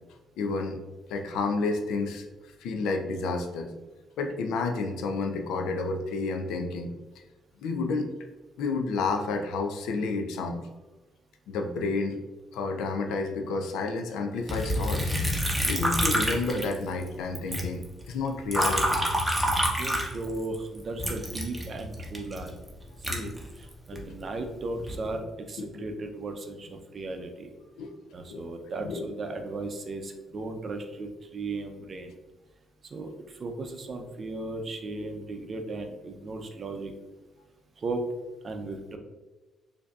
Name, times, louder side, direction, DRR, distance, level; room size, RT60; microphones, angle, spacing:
voice 1, 0.4-0.8 1.1-2.2 2.6-3.7 4.2-6.9 7.6-8.1 8.6-10.7 11.5-12.2 12.5-15.1 15.7-19.0 23.0-23.3 23.9-24.0 25.6-25.8 27.8-28.0 28.3-28.4 28.8-29.0 35.0-35.1, left 3 dB, 90° left, 5 dB, 0.4 m, -30 dB
Liquid, 14.5-17.1 17.3-20.5 21.0-24.0 24.6-25.1, equal, 10° right, 0.7 m, -28 dB
voice 2, 19.8-22.6 23.0-27.5 28.1-32.1 32.8-36.9 37.8-38.0 38.4-39.0, right 2 dB, 45° right, 4 dB, 0.5 m, -36 dB
4.4 x 2.7 x 2.3 m, 1.2 s
cardioid pair, 90°, 0 cm